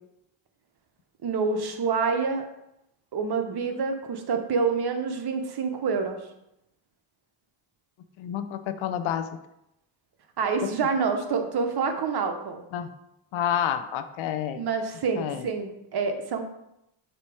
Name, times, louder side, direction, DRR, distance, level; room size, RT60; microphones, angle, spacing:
voice 1, 1.2-2.5 3.1-6.2 10.4-12.6 14.6-16.4, right 5 dB, 50° right, 6 dB, 1.0 m, -27 dB
voice 2, 8.2-9.2 12.7-12.9 13.3-14.6 15.1-15.5, left 9 dB, 70° left, 10 dB, 0.8 m, -29 dB
7.3 x 3.0 x 4.9 m, 0.85 s
cardioid pair, 80°, 50 cm